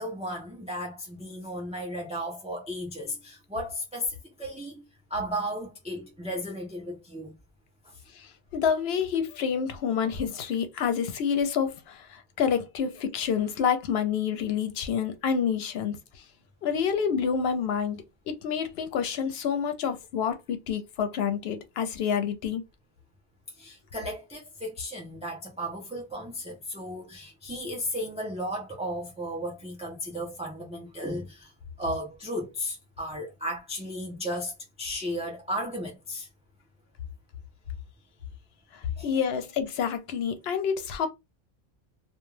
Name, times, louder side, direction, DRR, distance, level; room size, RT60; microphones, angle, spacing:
voice 1, 0.0-4.8 5.1-7.4 7.8-8.0 23.6-31.5 31.8-36.3 39.0-39.2, equal, 10° right, 0.5 m, -35 dB
voice 2, 8.1-16.0 16.6-22.6 39.0-41.1, left 7 dB, 80° left, 0.8 m, -28 dB
2.3 x 2.3 x 3.1 m
omnidirectional pair, 1.0 m